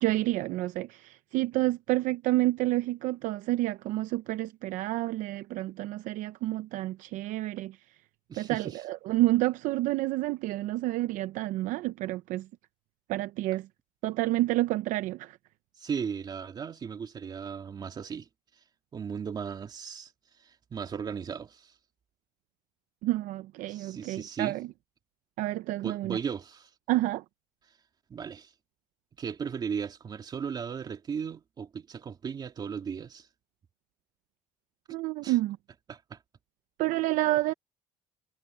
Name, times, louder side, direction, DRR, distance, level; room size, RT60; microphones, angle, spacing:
voice 1, 0.0-7.8 8.4-12.5 13.1-13.7 14.0-15.4 23.0-24.7 25.4-26.2 26.9-27.2 34.9-35.6 36.8-37.5, right 17 dB, 70° right, 0.6 m, -29 dB
voice 2, 8.3-8.8 15.8-18.3 18.9-20.1 20.4-21.7 23.7-24.6 25.8-26.7 28.1-28.5 29.2-33.3 34.9-35.4 35.9-36.2, right 6 dB, 30° right, 2.9 m, -36 dB
cardioid pair, 145°, 14 cm